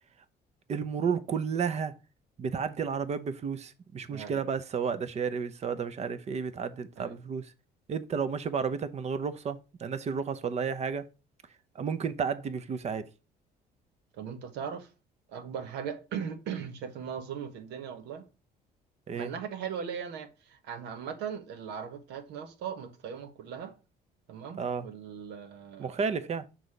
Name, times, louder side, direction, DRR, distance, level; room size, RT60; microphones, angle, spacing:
voice 1, 0.7-1.9 2.4-7.5 7.9-11.1 11.7-13.1 19.1-19.3 24.6-24.9 25.8-26.5, right 6 dB, 40° right, 0.8 m, -32 dB
voice 2, 4.1-4.4 7.0-7.2 14.2-14.9 15.3-18.3 19.1-23.7 24.3-26.0, right 7 dB, 85° right, 1.3 m, -39 dB
6.2 x 4.1 x 4.8 m
cardioid pair, 110°, 17 cm